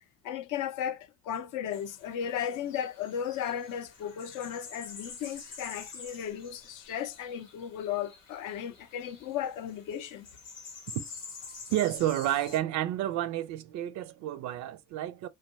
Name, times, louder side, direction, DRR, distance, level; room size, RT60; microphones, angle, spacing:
voice 1, 0.2-10.3, left 9 dB, 55° left, 0.6 m, -35 dB
sound 1, 1.7-12.6, left 4 dB, 85° left, 0.9 m, -48 dB
voice 2, 11.7-15.3, right 13 dB, 50° right, 0.5 m, -30 dB
2.7 x 2.3 x 2.7 m
hypercardioid pair, 55°, 38 cm